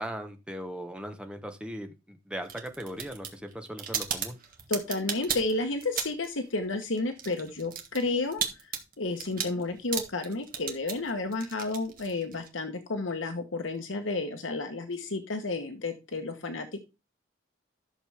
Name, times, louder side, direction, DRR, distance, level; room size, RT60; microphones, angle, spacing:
voice 1, 0.0-4.4, equal, 5° right, 5 dB, 1.1 m, -38 dB
sound 1, 2.4-6.4 6.6-12.5, right 8 dB, 45° right, 1.6 m, -35 dB
voice 2, 4.7-8.4 9.0-16.8, left 3 dB, 75° left, 6 dB, 1.2 m, -31 dB
12.0 x 6.5 x 3.5 m, 0.28 s
head